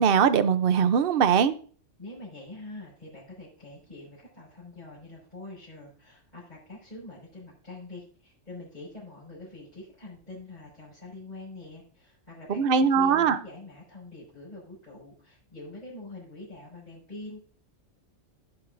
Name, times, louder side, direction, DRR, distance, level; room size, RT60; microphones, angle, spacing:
voice 1, 0.0-1.5 12.5-13.4, right 7 dB, 55° right, 12 dB, 0.9 m, -21 dB
voice 2, 2.0-17.5, left 2 dB, 35° left, -9 dB, 6.3 m, -45 dB
18.0 x 7.2 x 2.6 m, 0.42 s
omnidirectional pair, 1.3 m